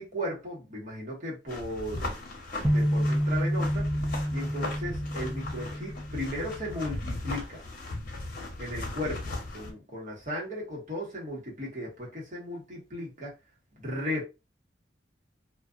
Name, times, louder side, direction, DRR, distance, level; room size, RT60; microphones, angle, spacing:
voice 1, 0.0-2.1 2.5-3.9 4.3-7.6 8.6-13.3 13.8-14.2, equal, 45° right, 1.3 m, -36 dB
sound 1, 1.5-9.7, left 2 dB, 50° left, 1.0 m, -37 dB
sound 2, 2.6-6.7, equal, 10° right, 0.3 m, -29 dB
2.5 x 2.4 x 2.5 m
head